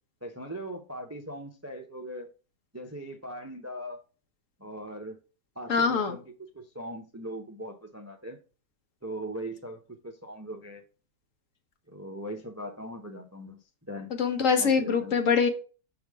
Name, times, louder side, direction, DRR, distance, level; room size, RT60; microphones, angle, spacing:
voice 1, 0.2-2.3 2.7-4.0 4.6-5.2 5.6-6.2 6.5-8.4 9.0-10.8 11.9-13.6 13.9-14.1 14.6-15.2, right 1 dB, 15° right, 0.5 m, -40 dB
voice 2, 5.7-6.2 14.2-15.5, left 5 dB, 55° left, 1.4 m, -24 dB
6.8 x 5.5 x 3.5 m
omnidirectional pair, 1.7 m